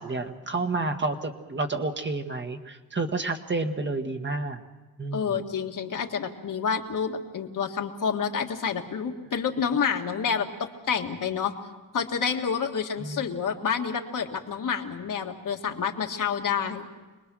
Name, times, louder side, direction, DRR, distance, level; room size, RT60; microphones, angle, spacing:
voice 1, 0.0-4.6 5.0-5.4 13.0-13.2, right 3 dB, 30° right, 5 dB, 1.5 m, -30 dB
voice 2, 5.1-11.5 11.9-16.9, left 6 dB, 60° left, 3 dB, 1.8 m, -28 dB
26.5 x 20.0 x 6.3 m, 1.2 s
cardioid pair, 105°, 35 cm